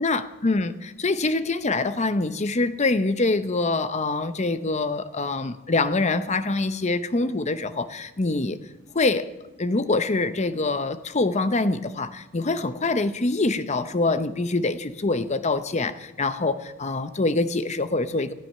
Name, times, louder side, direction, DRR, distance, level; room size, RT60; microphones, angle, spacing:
voice 1, 0.0-8.6 8.9-9.3 9.6-18.3, left 3 dB, 30° left, 0.7 m, -25 dB
18.0 x 12.5 x 5.5 m
head